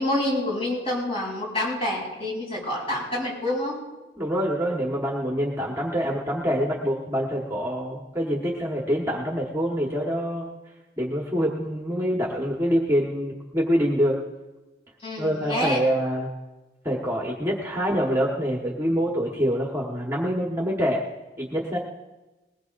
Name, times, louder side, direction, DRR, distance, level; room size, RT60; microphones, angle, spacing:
voice 1, 0.0-3.8 15.0-15.8, left 1 dB, 30° left, -5 dB, 7.1 m, -27 dB
voice 2, 4.2-10.5 11.0-14.2 15.2-16.3 16.8-21.0 21.4-21.8, equal, 15° right, -3 dB, 1.4 m, -25 dB
21.0 x 20.0 x 2.6 m, 1.1 s
head